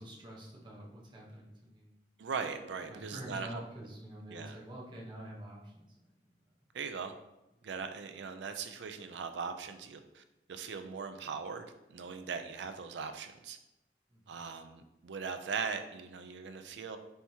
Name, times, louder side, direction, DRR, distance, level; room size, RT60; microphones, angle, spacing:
voice 1, 0.0-1.9 2.9-5.9 14.1-14.3, right 1 dB, 25° right, -4 dB, 0.9 m, -47 dB
voice 2, 2.2-3.6 4.3-4.6 6.7-7.1 7.6-10.2 10.5-13.6 14.3-17.0, right 5 dB, 90° right, 8 dB, 0.4 m, -40 dB
4.4 x 3.4 x 2.8 m, 0.93 s
head